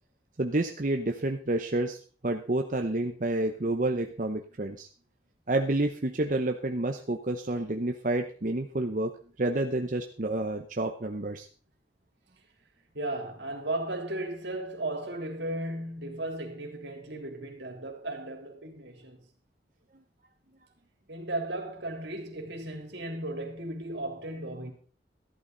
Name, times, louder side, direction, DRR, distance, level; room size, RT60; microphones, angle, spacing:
voice 1, 0.4-2.0 2.2-4.9 5.5-9.1 9.4-11.5, right 2 dB, 45° right, 0.8 m, -29 dB
voice 2, 12.9-19.2 21.1-24.7, right 1 dB, 80° right, 3.3 m, -35 dB
14.0 x 12.0 x 3.9 m
head